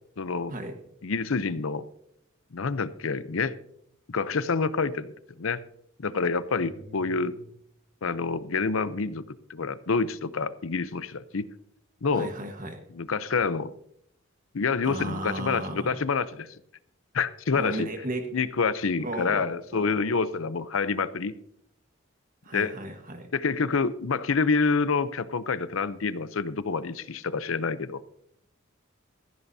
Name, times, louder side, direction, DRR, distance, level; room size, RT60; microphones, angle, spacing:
voice 1, 0.2-0.5 1.0-1.8 2.5-3.5 4.1-5.1 5.4-5.6 6.0-7.4 8.0-9.2 9.5-11.5 12.0-12.3 12.9-13.7 14.5-16.5 17.1-17.9 18.3-21.3 22.5-22.7 23.3-28.0, left 4 dB, 85° left, 14 dB, 0.7 m, -27 dB
voice 2, 6.6-7.4 12.1-12.8 14.8-16.0 17.5-18.3 19.0-19.4 19.7-19.9 22.4-23.3, right 1 dB, 40° right, 5 dB, 1.4 m, -35 dB
16.0 x 14.5 x 2.7 m, 0.73 s
head